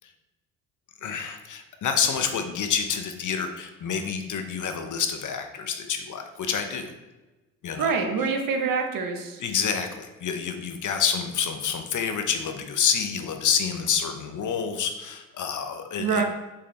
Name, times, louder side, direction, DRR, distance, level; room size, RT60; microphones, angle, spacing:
voice 1, 1.0-6.9 7.6-7.9 9.4-16.2, left 7 dB, 45° left, 6 dB, 1.0 m, -28 dB
voice 2, 7.8-9.4 16.0-16.2, right 5 dB, 50° right, 4 dB, 1.2 m, -25 dB
6.5 x 5.6 x 3.3 m, 1.1 s
hypercardioid pair, 70°, 43 cm